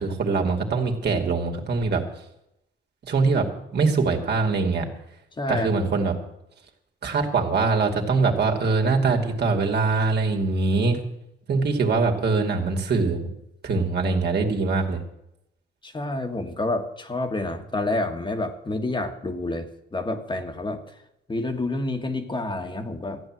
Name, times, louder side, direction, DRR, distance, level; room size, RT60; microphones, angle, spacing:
voice 1, 0.0-2.0 3.0-3.5 3.7-4.9 5.5-6.1 7.0-11.0 11.5-13.3 13.6-15.0, right 4 dB, 55° right, 2 dB, 2.5 m, -23 dB
voice 2, 5.4-5.7 15.8-20.8 21.3-23.2, left 2 dB, 25° left, 5 dB, 1.6 m, -28 dB
14.0 x 9.3 x 7.6 m, 0.82 s
cardioid pair, 90°, 20 cm